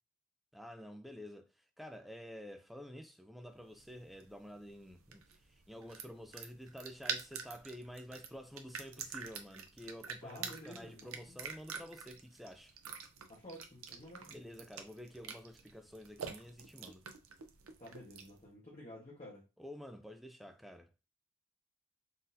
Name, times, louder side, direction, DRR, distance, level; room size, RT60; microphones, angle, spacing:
voice 1, 0.5-12.7 14.2-17.0 19.6-20.9, equal, ahead, 0.4 m, -50 dB
sound 1, 3.6-18.4, right 6 dB, 80° right, 0.7 m, -47 dB
voice 2, 10.2-11.4 13.3-14.4 17.8-19.4, left 1 dB, 30° left, 1.2 m, -51 dB
4.0 x 3.9 x 2.7 m
head